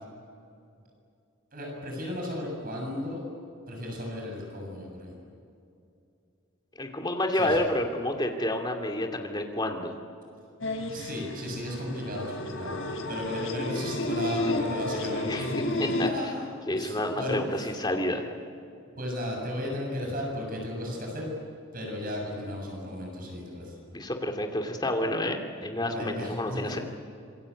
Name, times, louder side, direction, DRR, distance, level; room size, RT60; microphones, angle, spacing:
voice 1, 1.5-3.2 3.7-5.1 7.3-7.6 10.9-12.8 13.1-15.6 15.9-16.5 16.7-17.7 19.0-21.3 21.7-23.8 25.7-26.8, left 1 dB, 45° right, 0 dB, 7.2 m, -35 dB
voice 2, 6.8-9.9 15.3-15.5 15.8-16.1 16.7-18.2 23.9-26.8, left 1 dB, 20° left, 3 dB, 2.5 m, -29 dB
sound 1, 10.6-16.1, left 1 dB, 75° left, 3.3 m, -31 dB
26.5 x 23.0 x 8.5 m, 2.5 s
head